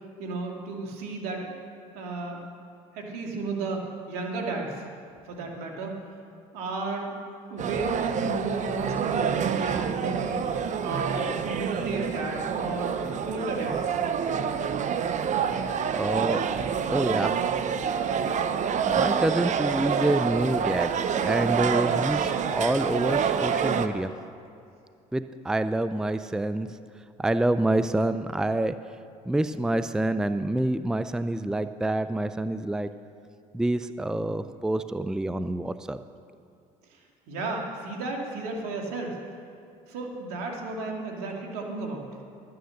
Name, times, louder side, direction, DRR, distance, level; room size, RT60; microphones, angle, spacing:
voice 1, 0.2-1.4 1.9-2.4 2.9-4.8 5.3-5.9 6.5-7.1 7.5-10.4 10.8-14.0 37.3-39.2 39.9-42.0, right 3 dB, 80° right, 1 dB, 2.3 m, -33 dB
sound 1, 7.6-23.9, right 7 dB, 45° right, 0.8 m, -27 dB
voice 2, 15.9-16.4 16.9-17.4 19.0-20.9 21.2-24.1 25.1-26.7 27.2-28.7 29.3-32.9 33.5-36.0, right 1 dB, 5° right, 12 dB, 0.4 m, -27 dB
12.5 x 9.5 x 6.5 m, 2.4 s
supercardioid pair, 80°, 17 cm